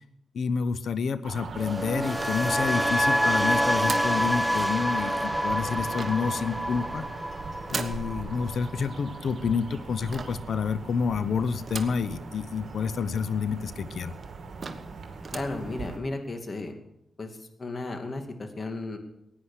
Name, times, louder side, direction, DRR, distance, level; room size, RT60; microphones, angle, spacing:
voice 1, 0.3-7.0 7.7-14.1, left 6 dB, 70° left, 14 dB, 0.8 m, -29 dB
sound 1, 1.2-16.0, right 4 dB, 60° right, 2.4 m, -40 dB
sound 2, 1.6-9.7 9.9-10.3, equal, ahead, 1.0 m, -28 dB
sound 3, 2.2-2.9 3.8-4.2 5.9-6.4 7.7-8.1 10.1-10.5 11.7-12.1 12.6-12.7 12.9-13.0 13.7-13.8 14.2-14.3 14.6-14.9 15.2-15.6, right 4 dB, 45° right, 1.3 m, -37 dB
voice 2, 15.3-16.8 17.2-19.0, left 2 dB, 40° left, 6 dB, 2.3 m, -34 dB
16.0 x 9.8 x 6.5 m, 0.84 s
cardioid pair, 70°, 0 cm